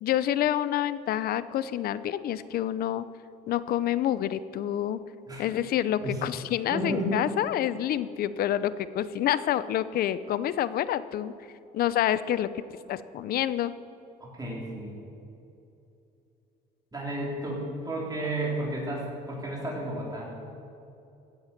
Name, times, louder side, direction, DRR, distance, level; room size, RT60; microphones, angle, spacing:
voice 1, 0.0-3.1 3.5-5.0 5.4-11.3 11.7-12.5 12.9-13.7, left 11 dB, 65° left, 15 dB, 0.6 m, -28 dB
voice 2, 6.7-7.2 14.2-14.9 16.9-20.3, right 1 dB, 20° right, -3 dB, 3.9 m, -32 dB
16.0 x 8.0 x 7.4 m, 2.8 s
cardioid pair, 110°, 17 cm